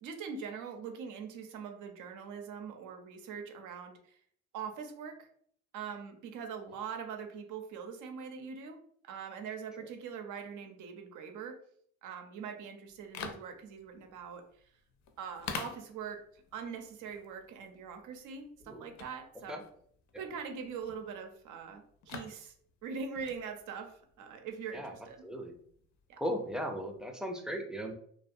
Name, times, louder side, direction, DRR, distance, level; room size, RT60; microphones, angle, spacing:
voice 1, 0.0-4.0 4.5-5.3 5.7-11.6 12.0-14.4 15.2-19.6 20.2-22.5 22.8-25.2 26.1-26.2, right 6 dB, 85° right, 5 dB, 0.5 m, -42 dB
sound 1, 12.9-27.1, left 5 dB, 70° left, 0.5 m, -49 dB
voice 2, 24.7-25.6 26.2-27.9, equal, ahead, 3 dB, 0.4 m, -38 dB
2.4 x 2.1 x 2.6 m, 0.62 s
cardioid pair, 90°, 30 cm